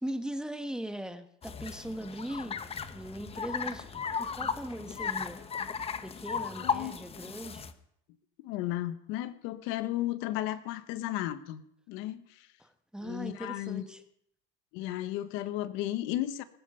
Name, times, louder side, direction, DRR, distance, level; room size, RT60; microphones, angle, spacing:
voice 1, 0.0-2.6 2.9-3.9 4.2-5.4 6.0-7.7 12.6-14.0, right 1 dB, 5° right, 8 dB, 1.2 m, -39 dB
sound 1, 1.4-7.7, left 6 dB, 30° left, 1.1 m, -36 dB
voice 2, 6.6-7.0 8.4-12.5 13.0-14.0 14.7-16.4, left 14 dB, 75° left, 13 dB, 1.1 m, -34 dB
20.5 x 10.0 x 5.6 m, 0.71 s
supercardioid pair, 105°, 21 cm